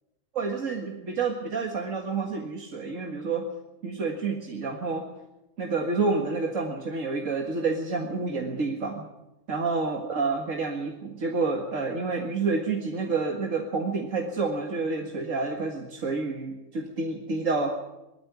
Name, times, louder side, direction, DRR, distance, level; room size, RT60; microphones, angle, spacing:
voice 1, 0.3-3.5 3.8-5.1 5.6-9.0 9.5-17.7, right 4 dB, 90° right, 2 dB, 2.2 m, -29 dB
20.0 x 14.5 x 9.5 m, 0.95 s
omnidirectional pair, 1.3 m